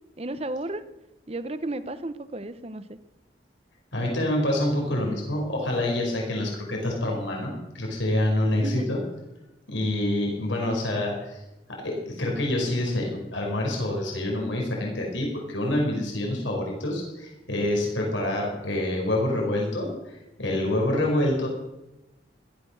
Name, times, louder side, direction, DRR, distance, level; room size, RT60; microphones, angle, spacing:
voice 1, 0.2-0.8 1.3-3.0 8.6-9.0, right 2 dB, 30° right, 12 dB, 0.8 m, -33 dB
voice 2, 3.9-9.0 9.7-11.4 11.8-21.5, left 1 dB, 85° left, -1 dB, 5.3 m, -27 dB
16.0 x 13.5 x 6.5 m, 0.96 s
head